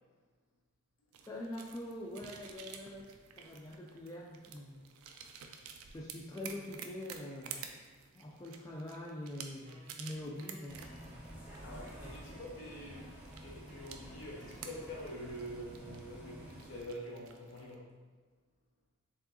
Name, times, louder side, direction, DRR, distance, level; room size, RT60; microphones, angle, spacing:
sound 1, 1.1-17.8, right 7 dB, 70° right, 0.4 m, -52 dB
voice 1, 1.3-4.8 5.3-5.6 5.8-7.7 8.1-11.1, left 1 dB, 15° left, -3 dB, 0.3 m, -44 dB
Wind instrument woodwind instrument, 9.6-15.7, right 1 dB, 90° right, 1.0 m, -62 dB
Bus, 10.7-16.8, equal, 10° right, 0.8 m, -50 dB
voice 2, 11.6-17.9, equal, 60° left, -3 dB, 1.1 m, -46 dB
4.5 x 3.6 x 2.8 m, 1.4 s
head